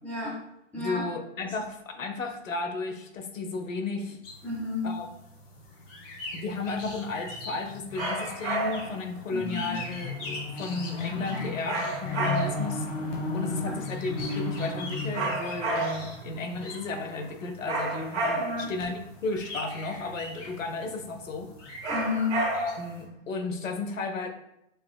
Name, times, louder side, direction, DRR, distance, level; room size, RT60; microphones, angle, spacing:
voice 1, 0.0-0.3 0.7-1.0 4.4-4.9 9.3-9.7 11.1-11.4 13.6-13.8 18.4-18.7 21.9-22.4, left 4 dB, 5° left, -8 dB, 0.5 m, -32 dB
voice 2, 0.7-4.2 4.8-5.1 6.3-12.9 13.3-21.5 22.5-24.3, left 3 dB, 80° left, 6 dB, 0.7 m, -34 dB
sound 1, 4.2-23.0, left 2 dB, 45° left, 1.3 m, -37 dB
sound 2, 8.0-9.0 11.7-12.8 15.1-16.2 17.7-18.7 21.8-22.9, right 2 dB, 60° right, 1.2 m, -30 dB
5.0 x 2.9 x 2.2 m, 0.83 s
hypercardioid pair, 125°, 39 cm